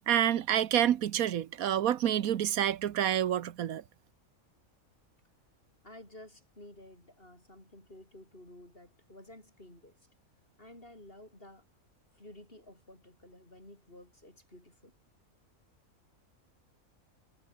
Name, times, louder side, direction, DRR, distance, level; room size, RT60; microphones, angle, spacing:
voice 1, 0.1-3.8, right 10 dB, 80° right, 1.3 m, -28 dB
voice 2, 5.8-10.0 10.6-11.6 12.1-14.9, left 1 dB, 40° left, 7.8 m, -53 dB
omnidirectional pair, 1.5 m